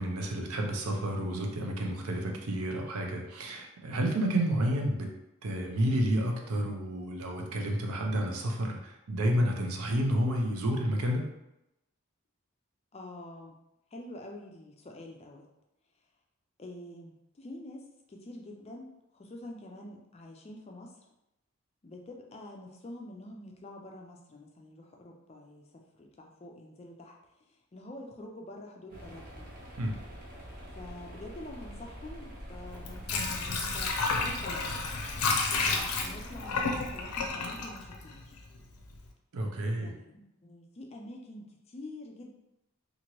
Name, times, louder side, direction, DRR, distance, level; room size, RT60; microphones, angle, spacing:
voice 1, 0.0-5.1 5.4-11.3 29.8-29.9 39.3-39.9, right 1 dB, 80° right, 1 dB, 0.6 m, -30 dB
voice 2, 12.9-13.6 13.9-15.5 16.6-20.9 21.8-27.2 27.5-29.5 30.7-34.7 35.4-38.4 39.8-42.3, left 1 dB, 30° left, 1 dB, 0.3 m, -47 dB
sound 1, 28.9-37.3, equal, 40° right, 0.6 m, -45 dB
Water / Sink (filling or washing), 32.7-38.6 38.9-39.0, left 4 dB, 90° left, 0.5 m, -31 dB
2.9 x 2.5 x 2.9 m, 0.88 s
head